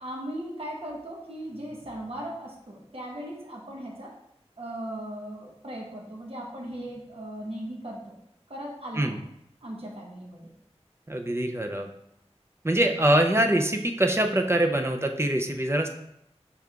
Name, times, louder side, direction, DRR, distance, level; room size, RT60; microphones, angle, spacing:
voice 1, 0.0-4.1 4.6-8.1 8.5-9.2 9.6-10.5, right 1 dB, 60° right, -2 dB, 1.1 m, -38 dB
voice 2, 11.1-11.9 12.6-15.9, right 1 dB, 25° right, 4 dB, 0.5 m, -24 dB
6.2 x 3.4 x 2.4 m, 0.77 s
wide cardioid pair, 45°, 11 cm